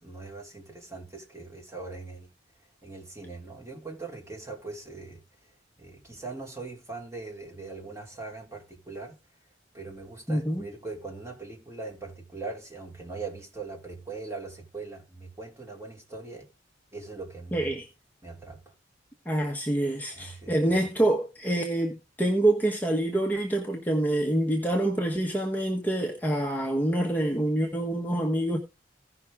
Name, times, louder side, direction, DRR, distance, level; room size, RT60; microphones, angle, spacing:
voice 1, 0.0-2.3 2.8-5.2 5.8-9.2 9.7-16.5 16.9-17.7 18.2-18.7 20.1-21.0, right 3 dB, 15° right, 3.1 m, -41 dB
voice 2, 10.3-10.6 17.5-17.9 19.2-28.6, right 1 dB, 10° left, 1.1 m, -26 dB
16.5 x 5.8 x 3.6 m
head